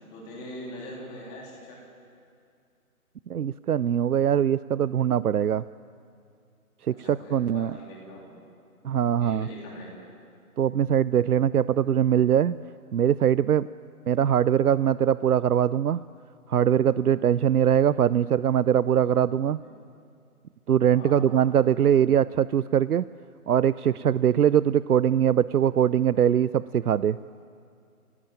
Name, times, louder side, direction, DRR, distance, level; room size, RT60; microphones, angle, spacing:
voice 1, 0.0-1.8 6.9-8.4 9.2-10.0 19.6-19.7 20.9-21.3 21.9-22.1, equal, 10° left, -4 dB, 3.3 m, -42 dB
voice 2, 3.3-5.6 7.0-7.7 8.8-9.5 10.6-12.6 12.9-13.7 14.1-16.0 16.5-19.6 20.7-23.0 23.5-27.2, right 9 dB, 75° right, 17 dB, 0.6 m, -22 dB
28.0 x 17.0 x 9.1 m, 2.4 s
hypercardioid pair, 175°, 45 cm